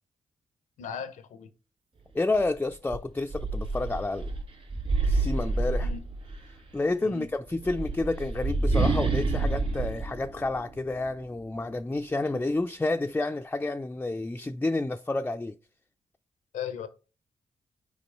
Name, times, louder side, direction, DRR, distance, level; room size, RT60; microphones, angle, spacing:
voice 1, 0.8-1.5 5.8-6.0 7.0-7.3 16.5-16.9, left 7 dB, 85° left, 0.7 m, -37 dB
voice 2, 2.1-4.3 5.0-5.9 6.7-15.6, left 2 dB, 15° left, 0.4 m, -30 dB
sound 1, 2.3-2.5 2.9-6.5 7.5-11.1, right 3 dB, 50° right, 2.4 m, -28 dB
5.2 x 4.7 x 4.4 m
supercardioid pair, 50°, 13 cm